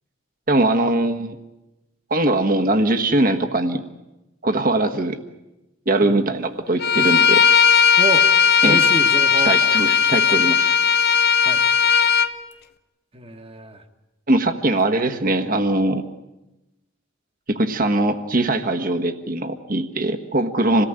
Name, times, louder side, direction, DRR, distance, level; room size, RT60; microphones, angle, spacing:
voice 1, 0.5-1.4 2.1-3.8 4.4-5.2 5.9-7.5 8.6-8.8 9.4-10.7 14.3-16.0 17.5-20.9, right 2 dB, 45° right, 6 dB, 1.5 m, -21 dB
Bowed string instrument, 6.8-12.3, left 7 dB, 50° left, 1.0 m, -16 dB
voice 2, 8.6-9.5 11.4-11.6 13.1-13.8, right 2 dB, 30° right, 7 dB, 1.5 m, -28 dB
27.0 x 18.0 x 9.0 m, 1.0 s
head